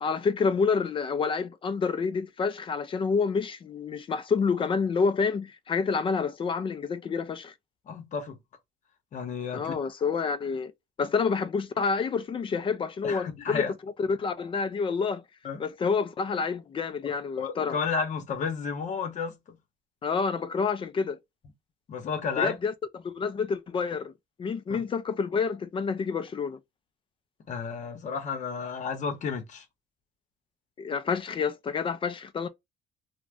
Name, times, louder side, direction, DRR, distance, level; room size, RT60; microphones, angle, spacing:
voice 1, 0.0-7.5 9.5-10.7 11.0-13.6 14.0-15.2 15.6-17.8 20.0-21.2 22.4-24.1 24.4-26.6 30.8-32.5, left 5 dB, 30° left, 0.4 m, -28 dB
voice 2, 7.9-8.4 9.1-9.7 13.0-13.7 15.4-15.6 17.0-19.6 21.9-22.6 24.7-24.8 27.5-29.6, left 5 dB, 45° left, 0.9 m, -32 dB
2.5 x 2.1 x 3.3 m
cardioid pair, 110°, 17 cm